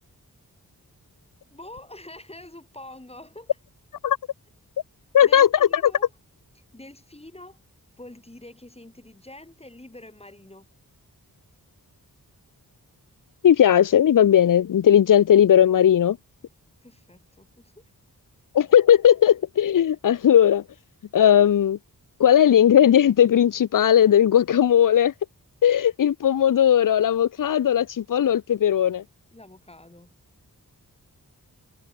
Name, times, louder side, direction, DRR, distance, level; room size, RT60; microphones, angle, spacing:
voice 1, 1.5-3.6 5.2-6.1 6.5-7.6 8.0-10.7 16.8-17.8 29.3-30.1, left 1 dB, 15° left, 6.6 m, -45 dB
voice 2, 5.1-5.8 13.4-16.2 18.5-20.6 21.1-21.8 22.2-25.1 25.6-29.0, left 10 dB, 60° left, 0.6 m, -17 dB
wide cardioid pair, 85°, 36 cm